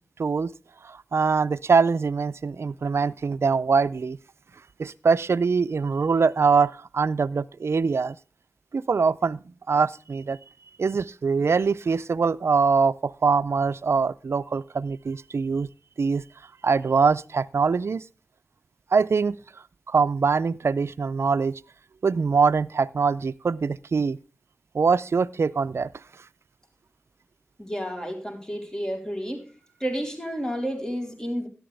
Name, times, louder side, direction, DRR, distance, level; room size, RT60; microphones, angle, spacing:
voice 1, 0.2-0.5 0.8-4.2 4.8-8.2 8.7-9.4 9.7-10.4 10.8-15.7 16.0-16.2 16.6-18.0 18.9-19.4 19.9-21.6 22.0-24.2 24.7-25.9, right 5 dB, 75° right, 0.4 m, -23 dB
voice 2, 27.6-29.5 29.8-31.5, equal, 15° left, 3.9 m, -31 dB
12.5 x 11.0 x 3.3 m
cardioid pair, 50°, 5 cm